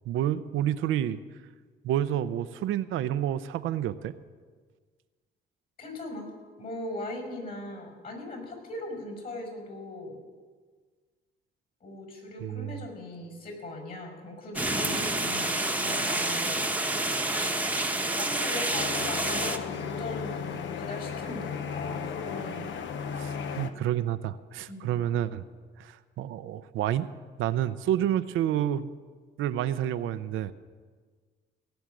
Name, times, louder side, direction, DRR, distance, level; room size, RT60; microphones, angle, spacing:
voice 1, 0.1-1.2 1.8-4.1 12.4-12.8 23.1-25.4 25.8-27.1 27.4-28.9 29.4-30.5, right 11 dB, 85° right, 12 dB, 0.6 m, -29 dB
voice 2, 5.8-6.3 6.6-10.2 11.8-16.6 18.1-22.6 24.7-25.1, left 1 dB, 50° left, 3 dB, 5.5 m, -39 dB
sound 1, 14.6-19.6, right 2 dB, 10° right, 1.0 m, -28 dB
sound 2, 18.7-23.7, left 6 dB, 70° left, 1.0 m, -35 dB
18.0 x 6.3 x 9.0 m, 1.5 s
cardioid pair, 90°, 20 cm